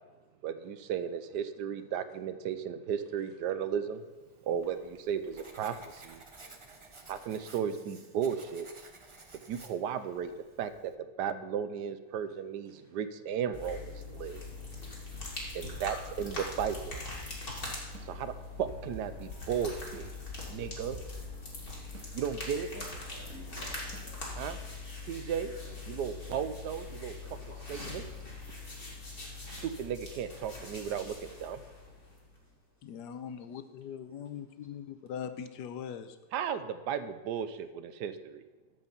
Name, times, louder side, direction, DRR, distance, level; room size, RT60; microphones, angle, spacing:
voice 1, 0.4-4.0 4.4-6.2 7.1-8.7 9.5-10.3 10.6-10.9 11.2-14.4 15.5-17.0 18.0-18.3 18.6-20.1 20.5-21.0 22.1-22.7 24.4-24.6 25.1-25.5 25.9-27.1 27.7-28.0 29.5-31.6 36.3-38.4, right 8 dB, 85° right, 11 dB, 1.3 m, -35 dB
Writing, 4.2-11.0, right 3 dB, 30° right, 0.6 m, -54 dB
sound 1, 13.5-32.4, left 3 dB, 35° left, 2.5 m, -42 dB
sound 2, 16.9-20.2 20.4-20.5 20.9-21.5 21.9-22.5 22.9-24.7, right 8 dB, 65° right, 1.0 m, -52 dB
voice 2, 22.7-24.3 25.0-25.7 27.2-28.3 28.7-28.8 29.1-29.3 29.6-29.7 30.9-31.0 31.6-31.7 34.1-34.2, equal, 10° right, -5 dB, 3.0 m, -53 dB
voice 3, 32.8-36.1, left 8 dB, 85° left, 10 dB, 1.3 m, -41 dB
13.0 x 5.5 x 7.1 m, 1.2 s
omnidirectional pair, 1.8 m